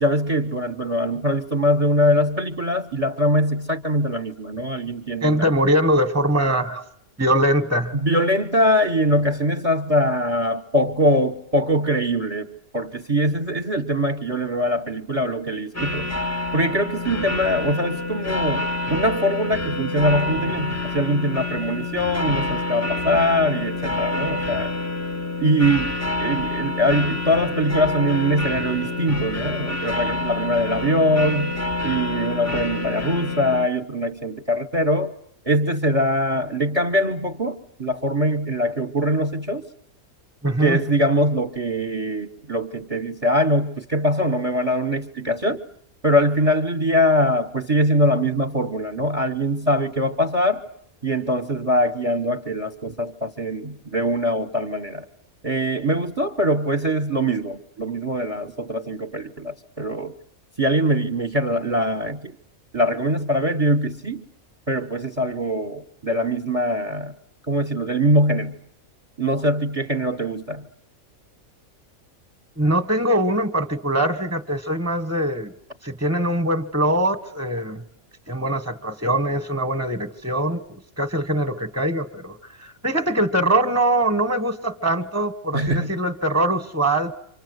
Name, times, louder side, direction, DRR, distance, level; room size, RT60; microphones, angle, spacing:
voice 1, 0.0-5.5 7.9-16.1 16.5-24.7 25.4-25.9 26.2-31.6 31.8-35.1 35.4-39.6 40.5-45.6 46.0-50.7 51.0-55.0 55.4-60.1 60.6-62.3 62.7-64.2 64.7-67.1 67.5-68.6 69.2-70.7 85.5-86.0, equal, 25° right, 5 dB, 1.2 m, -22 dB
voice 2, 5.2-6.8 7.2-7.9 40.4-40.8 72.6-75.5 75.8-77.8 78.3-87.1, right 1 dB, 10° right, 11 dB, 1.4 m, -22 dB
sound 1, 15.7-33.7, left 2 dB, 15° left, 0.9 m, -27 dB
28.5 x 25.5 x 8.1 m, 0.69 s
omnidirectional pair, 1.5 m